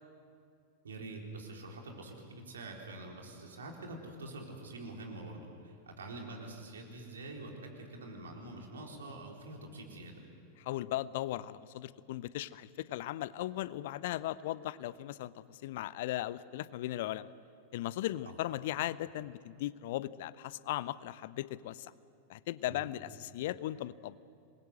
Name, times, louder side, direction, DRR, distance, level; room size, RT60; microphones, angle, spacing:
voice 1, 0.8-10.2 18.2-18.4 22.6-22.9, right 2 dB, 70° right, 1 dB, 4.1 m, -46 dB
voice 2, 10.6-17.3 17.7-21.9 22.3-24.2, left 14 dB, 55° left, 18 dB, 0.6 m, -37 dB
26.5 x 21.5 x 8.0 m, 2.4 s
figure-of-eight pair, 90°, 0 cm